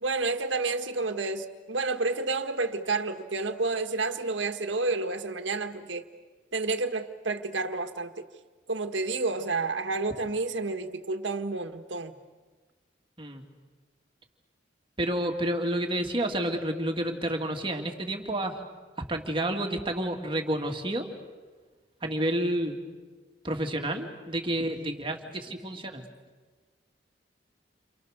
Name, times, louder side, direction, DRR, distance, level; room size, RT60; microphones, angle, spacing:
voice 1, 0.0-6.0 6.5-8.3 8.7-12.1, right 3 dB, 80° right, 7 dB, 1.6 m, -30 dB
voice 2, 15.0-18.6 19.0-21.1 22.0-22.8 23.4-26.0, right 1 dB, 30° right, 3 dB, 2.5 m, -30 dB
29.5 x 28.0 x 6.7 m, 1.4 s
head